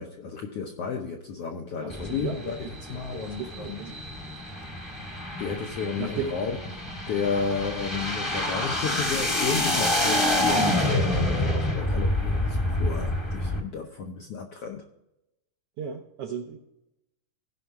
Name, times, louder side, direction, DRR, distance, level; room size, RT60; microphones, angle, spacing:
voice 1, 0.0-3.8 5.4-14.9, left 6 dB, 75° left, 3 dB, 1.4 m, -33 dB
voice 2, 1.8-2.4 3.1-4.0 6.0-6.3 15.8-16.6, right 7 dB, 75° right, 3 dB, 1.4 m, -35 dB
sound 1, 1.9-13.6, left 1 dB, 20° left, 0.8 m, -27 dB
16.0 x 5.5 x 4.7 m, 0.88 s
omnidirectional pair, 3.7 m